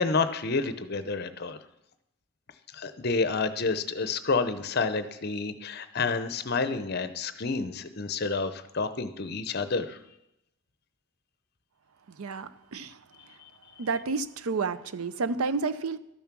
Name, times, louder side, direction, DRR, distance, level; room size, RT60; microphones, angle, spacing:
voice 1, 0.0-1.6 2.7-10.0 13.4-13.5, left 4 dB, 45° left, 11 dB, 0.7 m, -29 dB
voice 2, 12.1-13.0 13.3-13.4 13.8-16.0, right 4 dB, 85° right, 14 dB, 0.6 m, -30 dB
12.5 x 7.1 x 6.0 m, 0.86 s
head